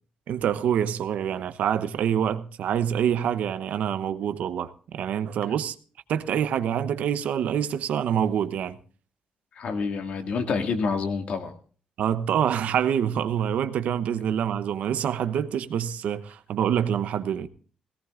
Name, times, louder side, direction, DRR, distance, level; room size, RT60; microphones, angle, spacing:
voice 1, 0.3-5.8 6.1-8.8 12.0-17.5, right 9 dB, 75° right, 0.9 m, -26 dB
voice 2, 9.6-11.5, left 4 dB, 60° left, 2.0 m, -28 dB
17.5 x 17.5 x 2.5 m
cardioid pair, 130°, 2 cm